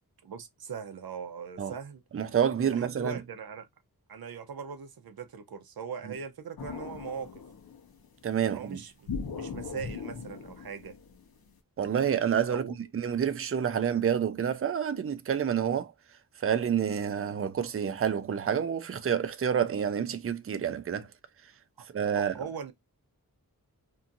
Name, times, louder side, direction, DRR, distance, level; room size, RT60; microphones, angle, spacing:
voice 1, 0.2-2.0 2.6-3.7 4.1-7.4 8.4-9.1 9.3-11.0 12.5-12.7 22.1-22.7, right 6 dB, 80° right, 0.7 m, -40 dB
voice 2, 2.1-3.2 8.2-8.8 11.8-12.6 12.9-15.9 16.4-21.1 21.9-22.3, right 8 dB, 40° right, 0.4 m, -28 dB
sound 1, 6.6-8.0 9.1-11.5, left 5 dB, 80° left, 0.8 m, -39 dB
2.7 x 2.4 x 2.6 m
wide cardioid pair, 105°, 36 cm